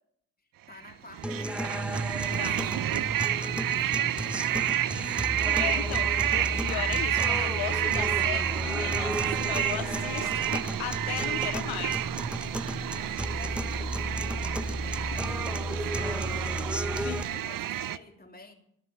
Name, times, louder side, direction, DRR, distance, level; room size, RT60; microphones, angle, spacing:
voice 1, 0.7-5.8 12.9-18.5, left 2 dB, 25° left, 3.1 m, -50 dB
sound 1, 0.8-18.0, right 12 dB, 60° right, 0.7 m, -30 dB
sound 2, 1.2-17.2, equal, 5° right, 0.7 m, -33 dB
voice 2, 5.6-12.0 15.1-15.2 17.0-17.2, left 16 dB, 80° left, 0.7 m, -37 dB
sound 3, 7.7-17.1, equal, 80° right, 4.1 m, -46 dB
15.0 x 10.5 x 7.5 m
hypercardioid pair, 40°, 38 cm